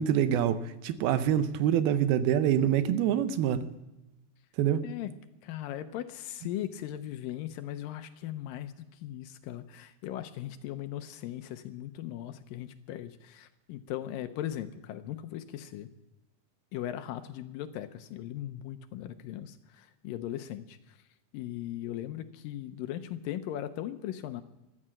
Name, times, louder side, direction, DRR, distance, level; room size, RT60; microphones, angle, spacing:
voice 1, 0.0-3.7 4.6-4.8, right 10 dB, 85° right, 11 dB, 2.7 m, -26 dB
voice 2, 5.4-8.7 9.0-15.9 16.7-20.8 21.3-24.4, left 12 dB, 75° left, 9 dB, 2.2 m, -38 dB
14.0 x 11.0 x 7.5 m, 0.99 s
omnidirectional pair, 4.3 m